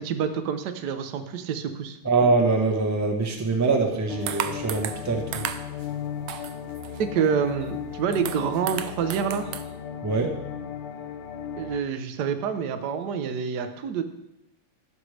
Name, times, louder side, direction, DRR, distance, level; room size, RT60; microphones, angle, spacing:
voice 1, 0.0-2.0 7.0-9.5 11.6-14.0, right 7 dB, 65° right, 8 dB, 1.1 m, -27 dB
voice 2, 2.0-5.4 10.0-10.3, right 3 dB, 15° right, 1 dB, 0.5 m, -23 dB
sound 1, 4.1-11.8, left 8 dB, 80° left, 1.6 m, -36 dB
sound 2, 4.3-5.1 5.3-5.9 6.3-7.2 7.6-7.7 7.9-9.6, right 10 dB, 90° right, 1.5 m, -34 dB
15.0 x 6.4 x 3.2 m, 0.88 s
omnidirectional pair, 2.3 m